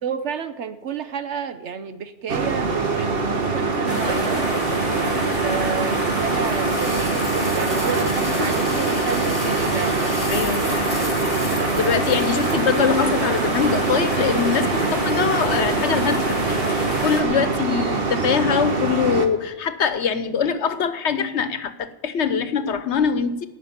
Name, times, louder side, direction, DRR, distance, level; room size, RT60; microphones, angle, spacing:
voice 1, 0.0-4.6 5.4-10.1 17.5-17.6, right 6 dB, 85° right, 1.3 m, -30 dB
sound 1, 2.3-19.3, right 3 dB, 60° right, 1.5 m, -24 dB
voice 2, 3.1-4.0 4.8-5.0 10.3-11.1 11.4-16.4 17.0-23.5, left 6 dB, 80° left, 1.2 m, -23 dB
sound 2, 3.9-17.2, equal, 30° right, 3.1 m, -28 dB
sound 3, 6.4-13.2, left 3 dB, 20° left, 0.7 m, -36 dB
18.5 x 6.3 x 9.9 m
omnidirectional pair, 1.1 m